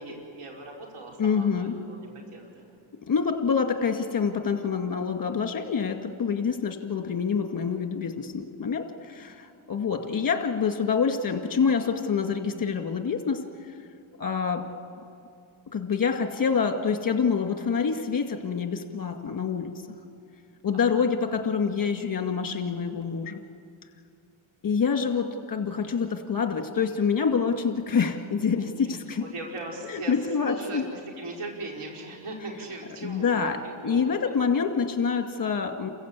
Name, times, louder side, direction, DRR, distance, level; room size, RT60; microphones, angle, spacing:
voice 1, 0.0-2.7 20.9-21.0 28.6-30.2 30.4-34.1, right 2 dB, 80° right, 0 dB, 4.8 m, -39 dB
voice 2, 1.2-1.7 3.1-13.4 14.2-14.6 15.7-19.7 20.6-23.4 24.6-29.2 29.9-30.9 33.0-33.6 33.8-35.9, left 6 dB, 40° left, 6 dB, 2.2 m, -26 dB
28.5 x 15.5 x 8.4 m, 2.5 s
cardioid pair, 80°, 49 cm